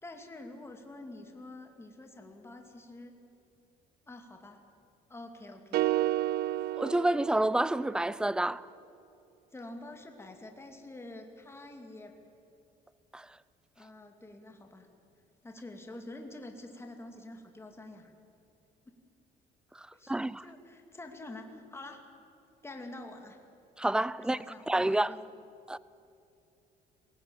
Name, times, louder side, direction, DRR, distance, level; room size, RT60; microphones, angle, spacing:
voice 1, 0.0-3.1 4.1-4.6 5.1-5.9 9.5-12.1 13.8-14.9 15.4-18.1 18.9-19.0 19.9-22.0 22.6-23.4 24.2-25.2, left 2 dB, 15° left, 2.6 m, -47 dB
sound 1, 5.7-8.0, right 14 dB, 70° right, 0.5 m, -31 dB
voice 2, 6.7-8.7 13.1-13.3 19.8-20.4 23.8-24.4 24.7-25.1 25.7-25.8, right 1 dB, 5° right, 0.5 m, -29 dB
22.0 x 17.5 x 8.9 m
cardioid pair, 110°, 17 cm